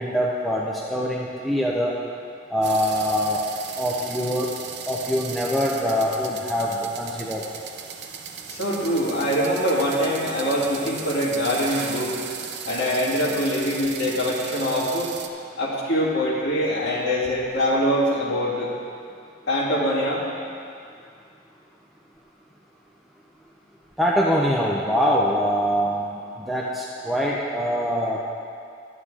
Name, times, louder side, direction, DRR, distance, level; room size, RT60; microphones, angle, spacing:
voice 1, 0.0-2.0 2.5-3.4 3.7-4.5 4.9-7.4 24.0-26.1 26.4-28.2, equal, ahead, -5 dB, 0.6 m, -24 dB
sound 1, 2.6-15.3, right 7 dB, 60° right, 0.6 m, -36 dB
voice 2, 8.5-12.2 12.6-15.1 15.6-18.7 19.5-20.2, equal, 60° left, -8 dB, 2.5 m, -23 dB
11.5 x 9.3 x 3.4 m, 2.4 s
head